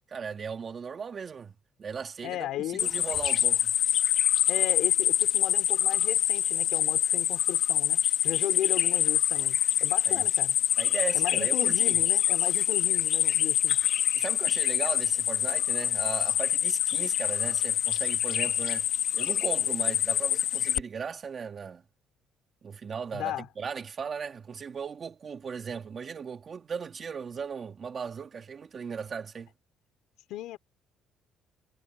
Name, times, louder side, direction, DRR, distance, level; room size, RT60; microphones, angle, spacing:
voice 1, 0.1-1.5 1.8-3.7 10.1-10.3 10.8-12.0 14.1-18.9 19.1-21.8 22.6-29.5, right 6 dB, 30° right, 2.6 m, -37 dB
voice 2, 2.2-2.9 4.5-10.6 11.1-13.8 23.1-23.5 30.3-30.6, left 14 dB, 75° left, 3.5 m, -35 dB
sound 1, 2.8-20.8, left 10 dB, 55° left, 2.4 m, -26 dB
cardioid pair, 155°, 0 cm